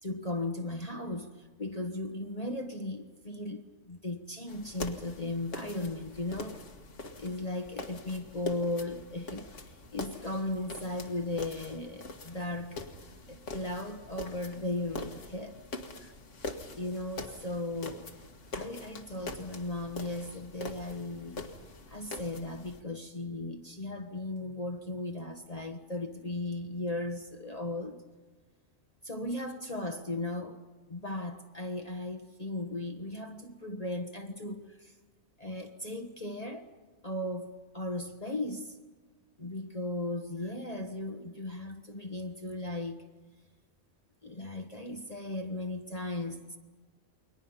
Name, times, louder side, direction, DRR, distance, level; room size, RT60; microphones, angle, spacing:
voice 1, 0.0-6.6 7.2-12.8 13.3-15.6 16.0-16.1 16.8-18.1 18.5-21.4 21.9-28.0 29.0-30.6 30.9-34.9 35.4-36.7 37.0-38.8 39.4-43.0 44.2-46.6, left 2 dB, 30° left, 5 dB, 1.3 m, -37 dB
sound 1, 4.5-22.8, left 2 dB, 60° left, 2.0 m, -43 dB
29.0 x 22.5 x 5.7 m, 1.3 s
omnidirectional pair, 1.4 m